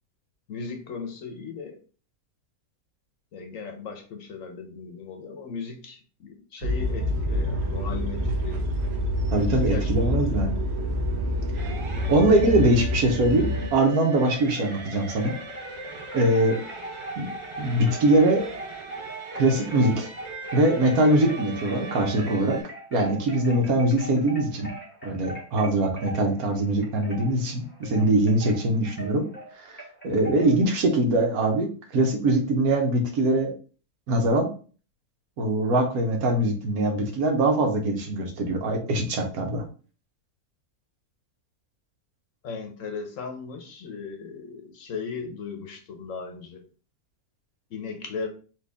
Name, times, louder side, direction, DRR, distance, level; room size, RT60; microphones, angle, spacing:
voice 1, 0.5-1.8 3.3-8.6 9.5-10.5 16.4-16.5 42.4-46.6 47.7-48.3, left 5 dB, 65° left, 1.1 m, -37 dB
sound 1, 6.6-13.7, equal, 55° right, 0.9 m, -27 dB
voice 2, 9.3-10.6 11.6-11.7 12.1-15.3 16.1-16.6 17.2-17.3 17.6-18.5 19.3-20.1 20.5-22.6 22.9-24.7 25.0-29.2 29.6-33.5 34.1-34.5 35.4-39.6, right 1 dB, 75° right, 1.4 m, -22 dB
sound 2, 11.6-22.6, right 3 dB, 30° right, 0.6 m, -39 dB
Wind chime, 15.1-15.7 16.1-30.6, right 1 dB, 5° left, 1.4 m, -41 dB
4.3 x 2.9 x 3.4 m
omnidirectional pair, 1.6 m